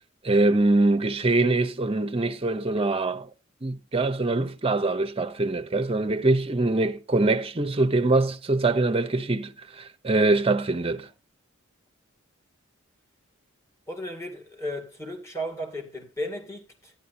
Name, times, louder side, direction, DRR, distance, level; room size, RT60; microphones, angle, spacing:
voice 1, 0.2-3.3 3.6-11.1, right 2 dB, 30° right, 0.8 m, -23 dB
voice 2, 13.9-16.9, equal, 15° left, 2.4 m, -35 dB
14.0 x 10.5 x 2.7 m
head